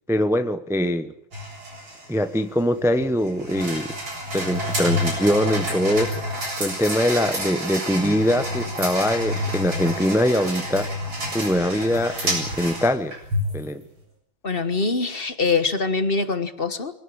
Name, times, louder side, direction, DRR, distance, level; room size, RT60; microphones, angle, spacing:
voice 1, 0.1-1.1 2.1-3.9 4.3-6.1 6.6-10.9 11.3-13.1 13.5-13.8, equal, 5° right, 10 dB, 0.3 m, -22 dB
sound 1, 1.3-13.7, equal, 85° right, 8.4 m, -29 dB
voice 2, 14.4-16.9, left 4 dB, 30° left, 12 dB, 1.4 m, -23 dB
24.5 x 18.0 x 8.8 m, 0.71 s
omnidirectional pair, 2.2 m